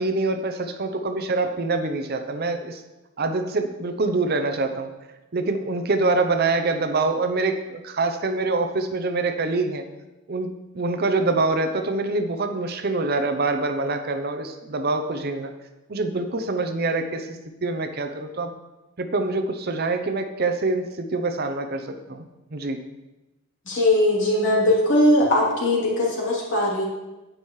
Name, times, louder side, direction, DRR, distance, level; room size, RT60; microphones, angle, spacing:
voice 1, 0.0-2.8 3.2-4.9 5.3-9.8 10.3-10.5 10.7-15.5 15.9-17.3 17.6-18.5 19.0-22.2 22.5-22.8, right 3 dB, 50° right, 7 dB, 0.7 m, -25 dB
voice 2, 23.6-26.8, left 1 dB, 60° left, -4 dB, 3.1 m, -20 dB
10.0 x 9.0 x 3.2 m, 1.0 s
head